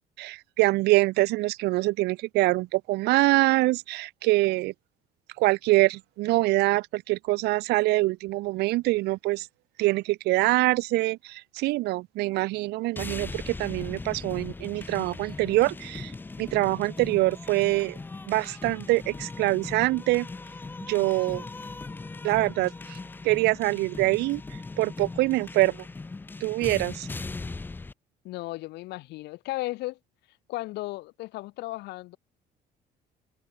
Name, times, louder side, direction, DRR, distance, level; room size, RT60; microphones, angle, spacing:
voice 1, 0.2-4.7 5.4-9.5 9.8-16.1 16.4-18.0 18.3-20.3 20.9-21.4 22.2-23.0 23.2-24.4 24.8-25.8 26.4-27.1, right 20 dB, 80° right, 0.4 m, -24 dB
sound 1, 13.0-27.9, left 3 dB, 10° left, 0.4 m, -39 dB
voice 2, 28.2-30.0 30.5-32.2, left 19 dB, 80° left, 0.7 m, -35 dB
open air
cardioid pair, 110°, 17 cm